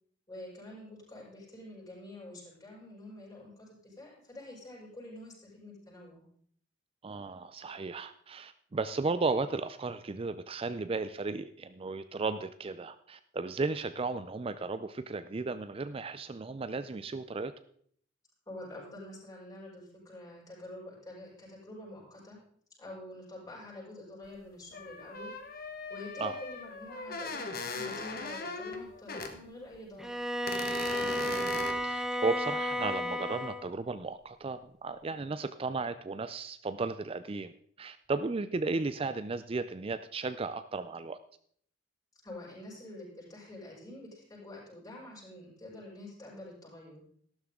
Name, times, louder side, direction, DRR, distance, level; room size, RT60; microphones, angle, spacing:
voice 1, 0.3-6.2 18.5-22.4 22.8-25.6 25.9-30.1 42.2-47.0, left 1 dB, 20° left, -6 dB, 6.1 m, -47 dB
voice 2, 7.0-17.5 26.2-26.4 31.0-31.6 31.8-37.5 37.8-41.2, right 3 dB, 30° right, 12 dB, 0.4 m, -35 dB
sound 1, 24.2-24.3 24.7-29.3 29.7-29.8 30.5-31.7, left 3 dB, 55° left, 1.5 m, -39 dB
Bowed string instrument, 30.0-33.7, equal, 5° right, 0.8 m, -33 dB
13.0 x 12.5 x 3.7 m, 0.63 s
head